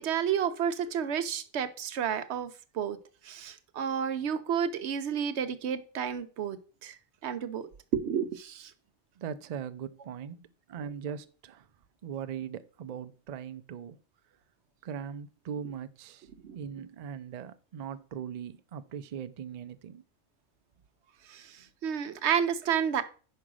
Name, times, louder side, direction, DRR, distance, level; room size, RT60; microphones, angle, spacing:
voice 1, 0.0-3.0 3.2-6.9 7.2-8.7 16.4-16.6 21.3-23.0, right 8 dB, 65° right, 0.9 m, -31 dB
voice 2, 9.2-11.7 12.0-14.0 14.8-16.3 16.5-20.0, right 8 dB, 85° right, 0.3 m, -40 dB
5.5 x 4.9 x 6.1 m
omnidirectional pair, 1.3 m